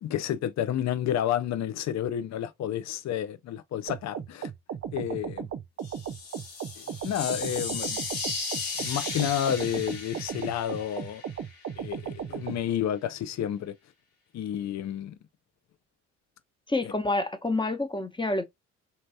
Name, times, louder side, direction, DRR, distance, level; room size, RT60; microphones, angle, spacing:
voice 1, 0.0-4.5 4.9-5.5 6.8-8.0 8.8-11.2 11.7-13.7 14.3-15.1 16.8-16.9, left 10 dB, 50° left, 0.6 m, -30 dB
sound 1, 3.9-12.6, right 8 dB, 40° right, 0.6 m, -36 dB
sound 2, 5.8-11.7, left 4 dB, 70° left, 2.4 m, -36 dB
voice 2, 16.7-18.4, left 2 dB, 15° left, 1.0 m, -28 dB
4.2 x 3.2 x 2.7 m
hypercardioid pair, 50°, 35 cm